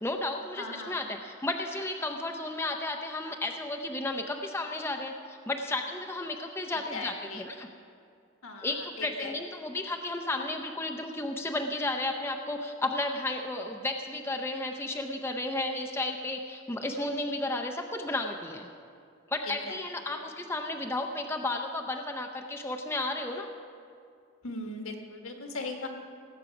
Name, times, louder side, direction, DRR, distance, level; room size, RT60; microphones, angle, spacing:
voice 1, 0.0-7.7 8.6-18.7 19.3-23.5, left 2 dB, 10° left, 2 dB, 0.5 m, -33 dB
voice 2, 0.6-1.1 6.9-7.4 8.4-9.4 19.5-19.8 20.1-20.2 24.4-25.9, left 3 dB, 80° left, 3 dB, 1.6 m, -39 dB
18.0 x 8.0 x 5.9 m, 2.4 s
head